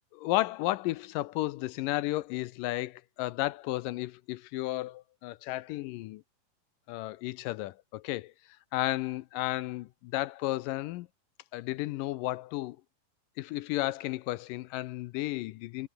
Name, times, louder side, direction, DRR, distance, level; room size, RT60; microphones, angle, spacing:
voice 1, 0.1-6.2 6.9-8.3 8.7-11.1 11.5-12.8 13.4-15.9, left 17 dB, 80° left, 2.1 m, -33 dB
omnidirectional pair, 4.2 m